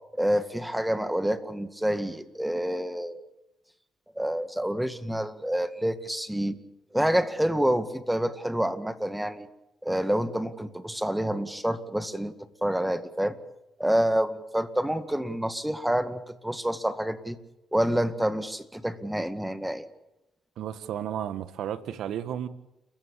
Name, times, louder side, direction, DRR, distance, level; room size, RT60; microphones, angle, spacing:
voice 1, 0.1-3.2 4.2-6.6 6.9-9.5 9.8-12.3 12.6-13.4 13.8-17.4 17.7-19.9, equal, 5° right, 2.0 m, -28 dB
voice 2, 20.6-22.5, right 10 dB, 75° right, 1.6 m, -33 dB
30.0 x 15.5 x 8.5 m
cardioid pair, 90°, 0 cm